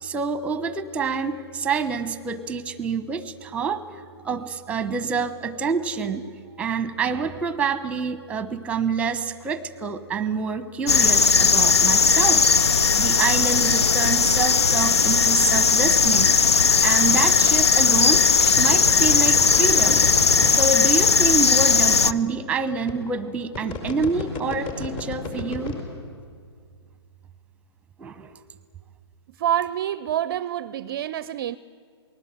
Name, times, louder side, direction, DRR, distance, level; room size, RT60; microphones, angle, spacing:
voice 1, 0.0-6.2 6.6-18.3 18.6-20.1 20.4-25.8 28.0-28.3, right 5 dB, 10° right, 1.0 m, -27 dB
sound 1, 10.9-22.1, left 5 dB, 75° left, 0.7 m, -18 dB
sound 2, 18.6-20.7 21.6-21.7 22.1-22.2 22.9-23.1 23.5-25.8, left 3 dB, 40° left, 5.2 m, -31 dB
voice 2, 29.4-31.6, right 11 dB, 40° right, 0.5 m, -26 dB
28.0 x 20.0 x 8.1 m
figure-of-eight pair, 130°, 14 cm